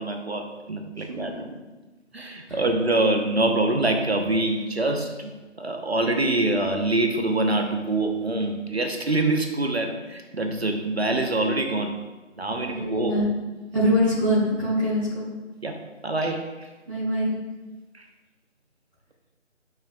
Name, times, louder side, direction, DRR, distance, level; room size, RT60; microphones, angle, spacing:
voice 1, 0.0-1.5 2.1-5.3 5.6-12.0 12.4-13.2 15.6-16.7 17.9-18.1, right 2 dB, 55° right, 4 dB, 1.0 m, -25 dB
voice 2, 12.5-13.2 13.7-15.2 16.8-17.3, equal, ahead, -16 dB, 1.4 m, -24 dB
13.0 x 5.7 x 2.3 m, 1.2 s
figure-of-eight pair, 160°, 37 cm